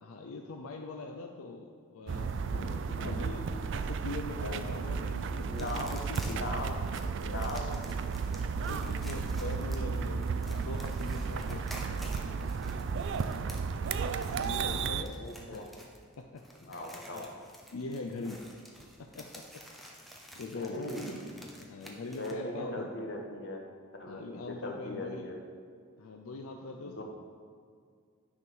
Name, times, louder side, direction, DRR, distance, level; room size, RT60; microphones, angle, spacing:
voice 1, 0.0-2.3 3.1-6.5 8.6-11.8 12.4-12.5 14.4-15.7 16.2-16.4 16.7-17.3 17.7-18.4 19.0-20.0 20.4-20.8 21.6-22.9 24.1-25.3 26.0-27.0, left 3 dB, 90° left, 3 dB, 0.5 m, -42 dB
sound 1, 2.1-15.0, right 5 dB, 60° right, 0.4 m, -33 dB
voice 2, 2.3-3.3 4.4-4.6 5.4-5.9 6.3-6.8 7.2-7.7 14.5-14.6 14.9-15.6 16.6-17.3 20.4-21.4 22.2-23.6 24.0-25.4 26.8-27.0, left 1 dB, 60° left, 1 dB, 1.2 m, -40 dB
sound 2, 5.6-22.3, equal, ahead, 0.7 m, -51 dB
9.6 x 3.6 x 6.1 m, 2.1 s
head